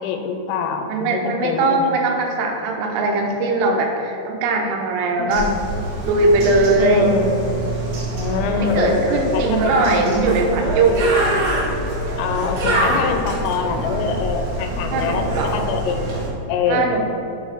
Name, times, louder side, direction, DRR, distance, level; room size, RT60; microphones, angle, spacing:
voice 1, 0.0-2.0 5.2-5.7 6.8-7.5 8.1-10.3 12.2-16.9, left 5 dB, 85° left, 5 dB, 3.2 m, -24 dB
voice 2, 0.9-5.5 6.0-7.1 8.5-11.3 14.9-15.5 16.7-17.4, right 3 dB, 85° right, 1 dB, 3.3 m, -20 dB
Bird, 5.3-16.3, right 1 dB, 65° right, 3.5 m, -25 dB
8.6 x 3.7 x 4.9 m, 2.9 s
omnidirectional pair, 5.8 m